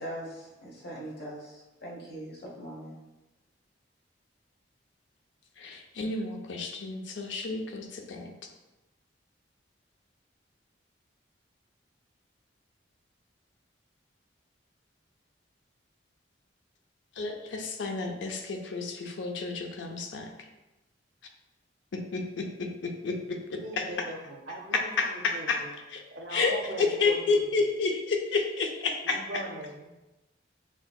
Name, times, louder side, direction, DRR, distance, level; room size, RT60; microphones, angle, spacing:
voice 1, 0.0-3.0, right 1 dB, 55° left, -3 dB, 1.1 m, -41 dB
voice 2, 5.6-8.3 17.2-20.3 21.9-23.8 24.7-25.6 25.9-26.0 26.3-26.5 26.8-29.2, left 4 dB, 75° left, 4 dB, 0.5 m, -30 dB
voice 3, 23.6-25.7 26.1-27.6 29.0-29.9, right 1 dB, 65° right, 0 dB, 0.6 m, -40 dB
5.8 x 2.7 x 2.3 m, 1.0 s
head